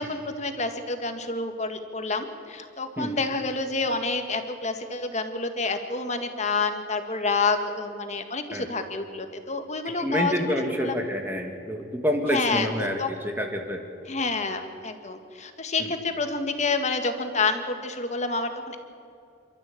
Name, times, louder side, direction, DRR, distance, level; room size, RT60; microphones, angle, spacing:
voice 1, 0.0-10.9 12.3-13.1 14.1-18.8, left 3 dB, 35° left, 7 dB, 1.9 m, -28 dB
voice 2, 10.0-13.8 15.8-15.9, equal, 10° right, 2 dB, 1.9 m, -28 dB
27.5 x 13.5 x 8.7 m, 2.6 s
head